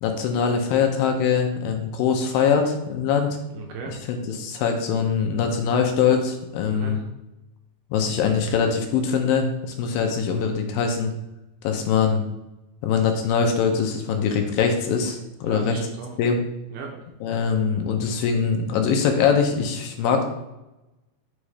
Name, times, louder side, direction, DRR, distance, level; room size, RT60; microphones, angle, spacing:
voice 1, 0.0-3.4 4.1-7.0 7.9-11.1 11.6-12.2 12.8-15.8 16.2-16.4 17.2-20.2, left 6 dB, 80° left, 4 dB, 2.4 m, -22 dB
voice 2, 3.5-4.0 6.7-7.1 15.4-16.1 16.7-17.0, right 5 dB, 75° right, 1 dB, 2.2 m, -36 dB
6.2 x 3.1 x 4.9 m, 0.94 s
omnidirectional pair, 4.2 m